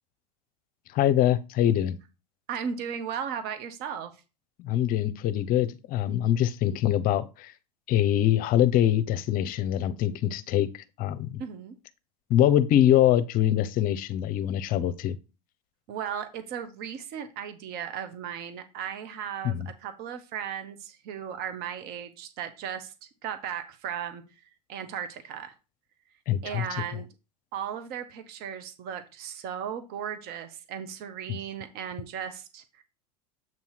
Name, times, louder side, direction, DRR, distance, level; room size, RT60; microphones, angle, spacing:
voice 1, 0.9-2.0 4.6-7.5 7.9-11.4 12.3-15.1 19.4-19.7 26.3-26.6 31.3-31.4, left 11 dB, 45° left, 0.8 m, -24 dB
voice 2, 2.5-4.2 11.4-11.8 15.9-22.9 23.2-24.2 24.7-25.5 26.4-27.1 27.5-32.8, right 8 dB, 50° right, 1.1 m, -36 dB
7.8 x 3.0 x 5.8 m
hypercardioid pair, 100°, 21 cm